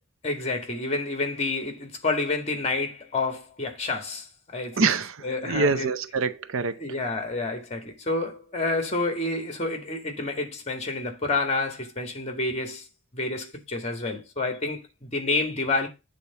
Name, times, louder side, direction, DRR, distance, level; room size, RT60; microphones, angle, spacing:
voice 1, 0.2-4.3 4.5-4.9 5.2-5.9 6.8-12.8 13.1-15.9, left 3 dB, 30° left, 1.7 m, -29 dB
voice 2, 4.7-6.8, right 4 dB, 65° right, 0.6 m, -25 dB
8.3 x 3.8 x 6.8 m
head